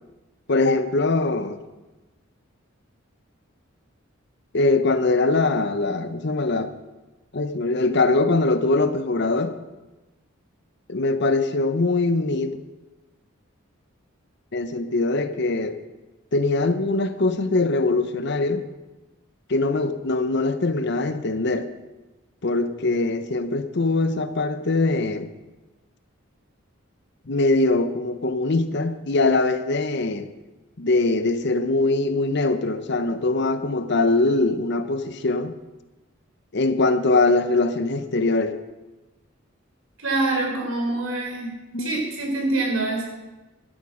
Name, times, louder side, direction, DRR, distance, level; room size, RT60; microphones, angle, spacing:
voice 1, 0.5-1.6 4.5-6.7 7.3-9.5 10.9-12.6 14.5-15.8 16.3-18.6 19.5-21.7 22.4-25.3 27.3-30.3 30.8-35.5 36.5-38.6 41.7-41.9, left 2 dB, 55° left, 11 dB, 0.8 m, -22 dB
voice 2, 40.0-41.5 41.8-43.0, right 2 dB, 90° right, 0 dB, 3.8 m, -25 dB
12.5 x 11.0 x 5.0 m, 1.1 s
head